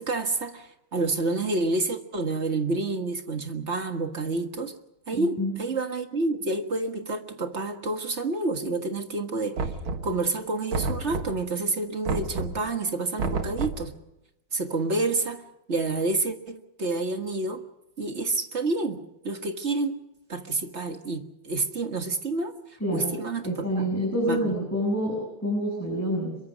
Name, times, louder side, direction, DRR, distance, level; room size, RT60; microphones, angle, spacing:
voice 1, 0.0-4.7 5.1-9.7 10.0-13.9 14.5-15.4 15.7-17.6 18.0-20.0 20.3-22.6 22.9-23.9 24.3-24.5, right 3 dB, 35° right, 6 dB, 1.7 m, -29 dB
voice 2, 5.1-5.6 22.8-23.2 23.4-26.4, equal, 5° left, -2 dB, 7.1 m, -27 dB
Knock, 9.6-10.3 10.7-11.5 12.1-12.7 13.2-13.9, right 4 dB, 85° right, 2.5 m, -30 dB
26.5 x 23.0 x 5.2 m, 0.89 s
omnidirectional pair, 2.2 m